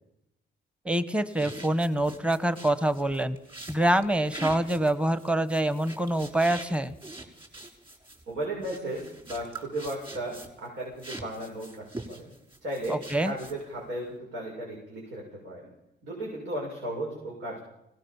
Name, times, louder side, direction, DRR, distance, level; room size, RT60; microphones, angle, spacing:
voice 1, 0.8-3.4 3.7-6.9 12.9-13.3, right 1 dB, 5° right, 13 dB, 1.3 m, -25 dB
sound 1, 1.3-10.7 11.0-13.8, right 2 dB, 25° right, 6.0 m, -43 dB
voice 2, 8.3-12.3 12.6-13.0 13.2-15.7 16.0-17.6, right 1 dB, 80° right, -2 dB, 7.4 m, -35 dB
23.5 x 19.0 x 7.3 m, 0.90 s
cardioid pair, 90°, 20 cm